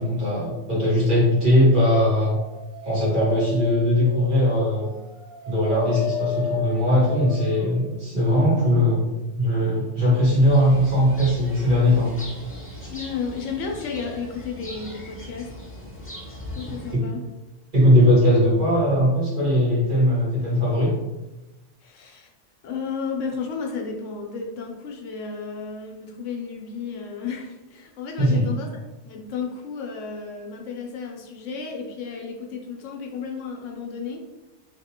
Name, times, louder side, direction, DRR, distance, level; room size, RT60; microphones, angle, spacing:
voice 1, 0.0-2.4 2.8-4.9 5.5-9.1 9.4-12.1 16.9-17.0 17.7-20.9 28.2-28.4, equal, 40° right, -7 dB, 1.5 m, -19 dB
Dog, 2.3-7.8, left 4 dB, 60° right, 0.6 m, -33 dB
sound 1, 10.4-16.9, left 1 dB, 15° left, 0.5 m, -39 dB
voice 2, 12.9-15.5 16.6-17.2 21.8-22.3 22.6-28.7 29.0-34.2, left 5 dB, 80° left, 1 dB, 0.9 m, -33 dB
3.3 x 2.8 x 2.8 m, 1.1 s
omnidirectional pair, 1.3 m